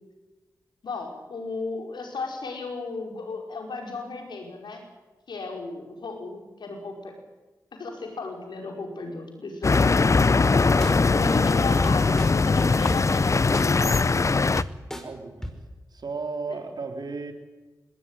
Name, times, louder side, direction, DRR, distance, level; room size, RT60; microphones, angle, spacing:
voice 1, 0.8-4.8 5.3-7.1 7.8-10.2 11.1-14.0 16.5-16.6, left 3 dB, 80° left, 2 dB, 5.1 m, -35 dB
sound 1, 9.6-14.6, left 4 dB, 45° left, 0.7 m, -21 dB
sound 2, 10.8-10.9 11.8-12.3 12.9-13.0 13.5-13.7 14.2-14.3 14.6-15.0 15.4-15.5, equal, 5° left, 4.9 m, -31 dB
voice 2, 15.0-15.5 15.9-17.3, right 4 dB, 65° right, 5 dB, 3.8 m, -35 dB
20.5 x 17.5 x 9.9 m, 1.2 s
cardioid pair, 45°, 8 cm